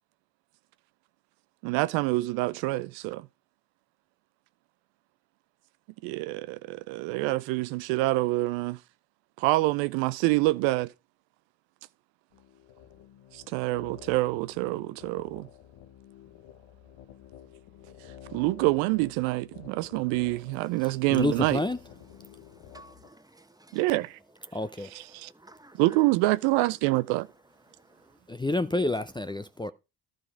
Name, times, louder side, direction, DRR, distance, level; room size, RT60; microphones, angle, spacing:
voice 1, 1.6-3.3 6.0-8.8 9.4-10.9 13.3-15.5 18.3-21.6 23.7-24.2 24.8-25.3 25.8-27.3, right 20 dB, 75° right, 0.5 m, -26 dB
sound 1, 12.3-23.1, left 10 dB, 70° left, 1.5 m, -51 dB
voice 2, 21.1-21.8 24.5-24.9 28.3-29.7, left 2 dB, 10° left, 0.6 m, -28 dB
voice 3, 22.2-23.8 24.5-25.8, right 1 dB, 10° right, 1.2 m, -55 dB
12.5 x 5.1 x 5.0 m
hypercardioid pair, 55°, 47 cm